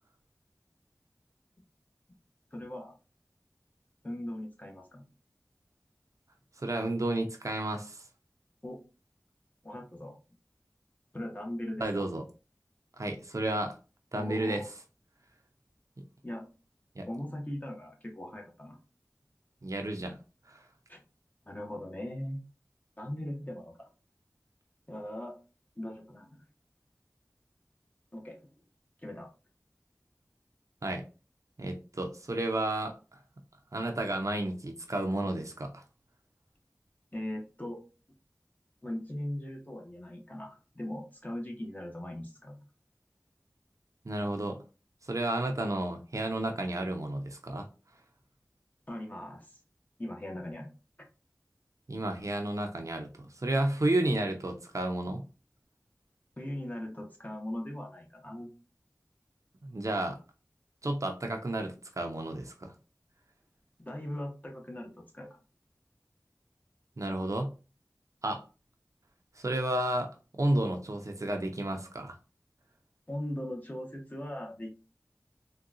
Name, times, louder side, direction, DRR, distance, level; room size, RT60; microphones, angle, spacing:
voice 1, 2.5-2.9 4.0-5.0 8.6-8.8 9.6-10.1 11.1-12.0 14.2-14.7 16.2-16.4 17.1-18.8 20.9-21.0 21.5-22.4 23.0-23.9 24.9-25.4 25.8-26.4 28.1-28.4 29.0-29.3 37.1-37.8 38.8-42.6 48.9-49.5 50.0-50.7 56.4-58.5 63.8-65.3 73.1-74.7, left 1 dB, 25° left, 1 dB, 0.9 m, -39 dB
voice 2, 6.6-8.0 11.8-12.2 13.0-13.8 14.1-14.6 16.0-16.1 17.0-17.1 19.6-20.2 20.5-20.6 30.8-31.0 31.6-32.9 33.7-35.8 44.0-44.6 45.1-47.7 51.9-55.2 59.6-60.2 60.8-62.7 67.0-67.5 68.2-68.4 69.4-70.1 70.4-72.1, right 1 dB, 60° right, 3 dB, 0.6 m, -32 dB
3.7 x 2.3 x 2.4 m, 0.33 s
wide cardioid pair, 45°, 6 cm